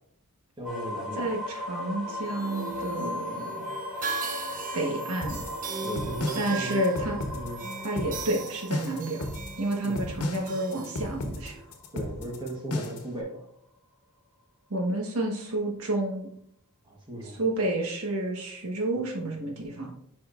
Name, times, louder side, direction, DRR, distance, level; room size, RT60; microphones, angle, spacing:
sound 1, 0.6-12.4, left 1 dB, ahead, 2.1 m, -38 dB
voice 1, 0.6-1.3 5.8-6.8 7.3-7.7 9.8-10.0 11.9-13.5 16.8-17.4, right 1 dB, 20° right, -1 dB, 1.2 m, -36 dB
voice 2, 1.2-3.6 4.7-5.4 6.3-7.2 7.8-9.2 9.6-11.6 14.7-16.3 17.3-19.9, right 1 dB, 75° right, 0 dB, 1.3 m, -30 dB
sound 2, 2.1-11.6, right 5 dB, 35° right, 0.6 m, -39 dB
sound 3, 5.2-13.1, left 1 dB, 90° left, 1.1 m, -34 dB
9.7 x 4.3 x 2.5 m, 0.71 s
head